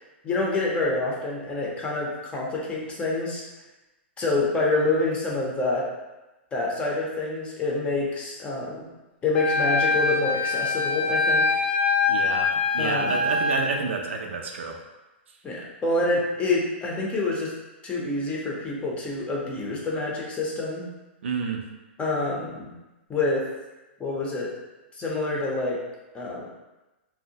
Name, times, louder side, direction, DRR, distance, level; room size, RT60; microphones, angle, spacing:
voice 1, 0.2-3.4 4.2-5.9 6.5-8.9 9.2-11.6 12.8-13.3 15.4-17.5 17.8-20.9 22.0-22.7 23.1-23.5 24.0-24.5 24.9-25.8 26.1-26.5, left 2 dB, 20° left, -3 dB, 0.6 m, -27 dB
Wind instrument woodwind instrument, 9.3-13.6, left 3 dB, 75° left, 0.6 m, -24 dB
voice 2, 12.1-12.5 12.7-14.8 21.2-21.6, right 4 dB, 85° right, 2 dB, 0.4 m, -29 dB
2.6 x 2.0 x 2.7 m, 1.1 s
hypercardioid pair, 135°, 6 cm